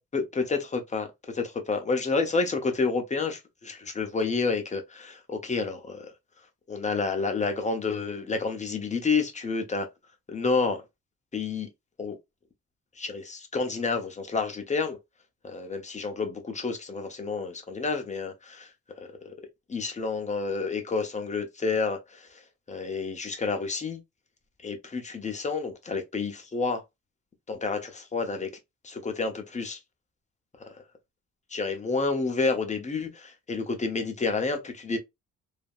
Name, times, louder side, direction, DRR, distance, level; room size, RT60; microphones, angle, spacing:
voice 1, 0.0-6.1 6.7-9.9 10.3-10.8 11.3-11.7 12.0-12.2 13.0-15.0 15.4-18.7 19.0-19.3 19.7-22.4 22.7-24.0 24.6-26.8 27.5-28.5 28.8-29.8 31.5-35.0, left 4 dB, 25° left, 0.8 m, -29 dB
3.3 x 2.1 x 2.4 m
cardioid pair, 90°, 30 cm